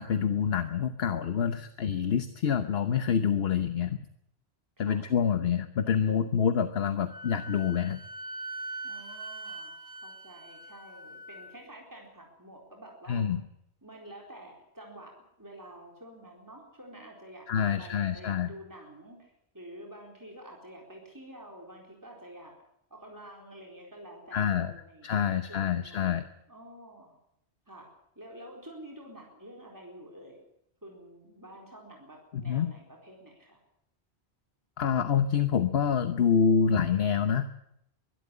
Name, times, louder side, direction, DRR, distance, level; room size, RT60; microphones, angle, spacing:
voice 1, 0.0-4.0 4.8-8.0 13.1-13.4 17.5-18.5 24.3-24.7 25.0-26.2 32.3-32.7 34.8-37.5, left 7 dB, 70° left, 10 dB, 1.2 m, -27 dB
voice 2, 4.8-5.1 8.8-13.3 13.8-22.5 22.9-27.2 27.7-27.9 28.2-30.4 30.8-33.6, right 1 dB, 15° right, 0 dB, 4.3 m, -49 dB
Wind instrument woodwind instrument, 7.1-11.5, right 1 dB, 65° right, 2.4 m, -42 dB
23.0 x 12.5 x 9.9 m, 0.78 s
omnidirectional pair, 1.1 m